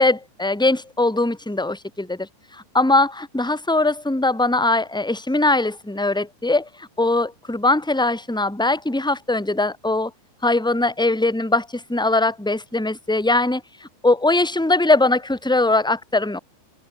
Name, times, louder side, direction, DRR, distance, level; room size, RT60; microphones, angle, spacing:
voice 1, 0.0-2.3 2.5-10.1 10.4-16.4, left 2 dB, ahead, 3.0 m, -21 dB
omnidirectional pair, 5.0 m